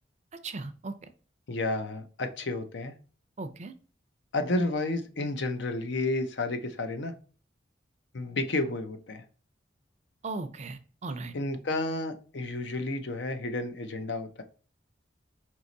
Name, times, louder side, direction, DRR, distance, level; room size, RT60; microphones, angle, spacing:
voice 1, 0.4-0.9 3.4-3.7 10.2-11.3, right 3 dB, 40° right, 9 dB, 0.5 m, -37 dB
voice 2, 1.5-2.9 4.3-7.1 8.1-9.2 11.3-14.4, left 2 dB, 70° left, 8 dB, 0.7 m, -31 dB
4.6 x 3.0 x 3.9 m, 0.39 s
head